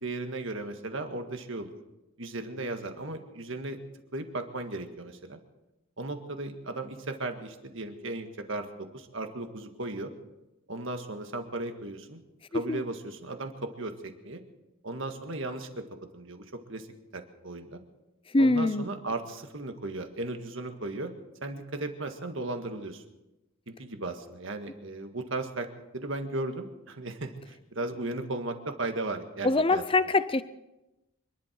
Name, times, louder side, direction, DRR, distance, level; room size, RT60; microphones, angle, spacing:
voice 1, 0.0-1.7 2.2-3.8 4.1-5.4 6.0-10.1 10.7-12.2 12.5-14.4 14.8-15.8 16.1-16.9 17.1-17.8 18.4-21.1 21.4-23.0 23.7-25.7 25.9-29.8, right 2 dB, 60° right, 6 dB, 1.7 m, -36 dB
voice 2, 18.3-18.9 29.4-30.4, left 2 dB, 25° left, 14 dB, 0.5 m, -24 dB
26.0 x 11.5 x 4.5 m, 0.98 s
head